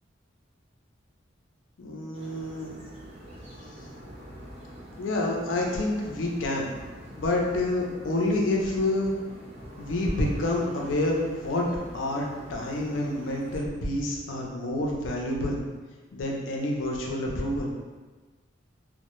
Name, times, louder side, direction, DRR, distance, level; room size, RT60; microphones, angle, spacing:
voice 1, 1.8-2.8 5.0-6.7 7.2-9.1 9.8-11.7 11.9-15.6 16.1-17.7, left 1 dB, 85° left, -2 dB, 0.5 m, -28 dB
sound 1, 2.1-13.6, equal, 35° right, 0.4 m, -45 dB
2.1 x 2.0 x 2.9 m, 1.3 s
head